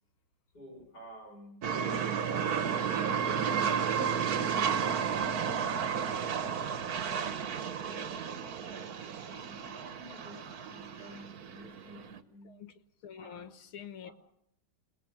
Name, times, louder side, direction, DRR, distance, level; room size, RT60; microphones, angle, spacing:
voice 1, 0.5-1.6 7.0-12.5 13.2-13.5 14.0-14.1, right 1 dB, 45° left, 6.9 m, -52 dB
sound 1, 1.6-12.2, right 7 dB, 50° right, 1.4 m, -32 dB
voice 2, 13.0-14.1, left 8 dB, 70° left, 2.1 m, -46 dB
27.5 x 20.5 x 7.3 m
omnidirectional pair, 2.4 m